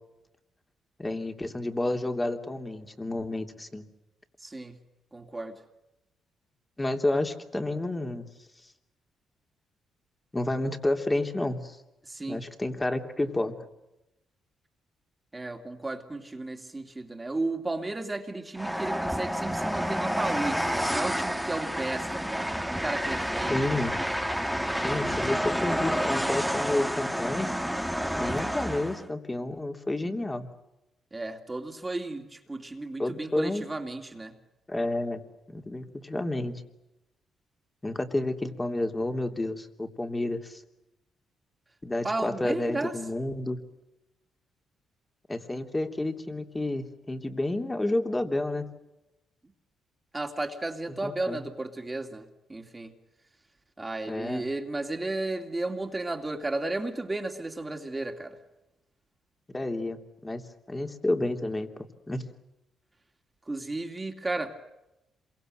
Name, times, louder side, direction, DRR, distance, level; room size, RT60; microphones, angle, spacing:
voice 1, 1.0-3.9 6.8-8.3 10.3-11.8 12.3-13.5 23.5-23.9 24.8-27.5 28.1-30.5 33.0-33.6 34.7-35.2 35.5-36.6 37.8-40.6 41.8-43.6 45.3-48.7 51.0-51.4 54.1-54.4 59.5-61.7 62.1-62.3, left 2 dB, 15° left, 6 dB, 3.1 m, -30 dB
voice 2, 4.4-4.7 5.1-5.6 12.1-12.4 15.3-23.7 31.1-34.3 42.0-42.9 50.1-52.2 52.5-52.9 53.8-58.4 63.5-64.5, right 2 dB, 20° right, 3 dB, 2.9 m, -34 dB
Train, 18.6-29.1, equal, ahead, 1.6 m, -29 dB
27.0 x 24.0 x 8.0 m, 0.92 s
cardioid pair, 90°, 0 cm